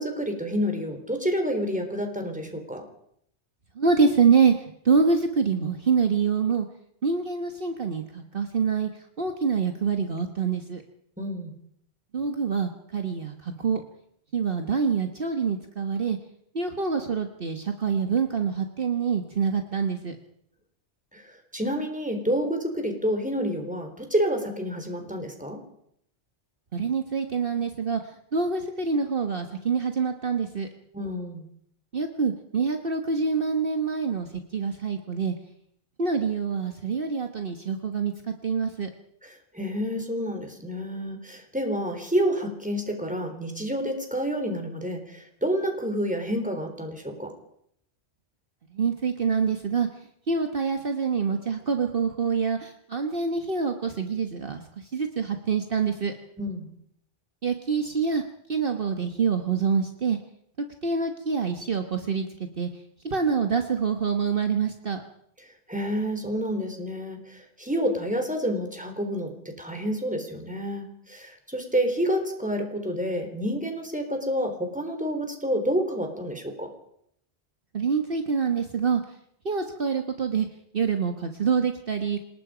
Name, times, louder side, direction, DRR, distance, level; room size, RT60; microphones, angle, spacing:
voice 1, 0.0-2.9 11.2-11.5 21.1-25.6 30.9-31.5 39.2-47.3 56.4-56.7 65.7-76.7, equal, 5° right, 4 dB, 3.9 m, -29 dB
voice 2, 3.8-4.5 4.8-6.7 7.0-8.9 9.2-10.8 12.1-13.8 14.3-16.2 16.5-20.2 26.7-28.0 28.3-30.7 31.9-35.3 36.0-38.9 48.7-49.9 50.3-56.1 57.4-58.2 58.5-60.2 60.8-62.3 62.6-62.7 63.0-65.0 77.7-79.0 79.4-80.5 80.7-82.2, right 5 dB, 55° right, 5 dB, 1.5 m, -26 dB
27.5 x 19.0 x 5.1 m, 0.72 s
omnidirectional pair, 1.2 m